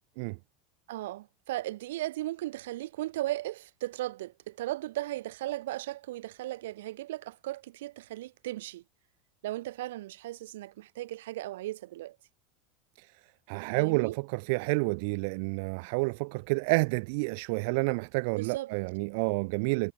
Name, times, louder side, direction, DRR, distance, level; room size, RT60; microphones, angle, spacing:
voice 1, 0.9-8.8 9.4-12.2 13.8-14.2 18.3-18.7, right 16 dB, 80° right, 5.5 m, -36 dB
voice 2, 13.5-19.9, right 31 dB, 60° right, 4.0 m, -29 dB
supercardioid pair, 135°, 0 cm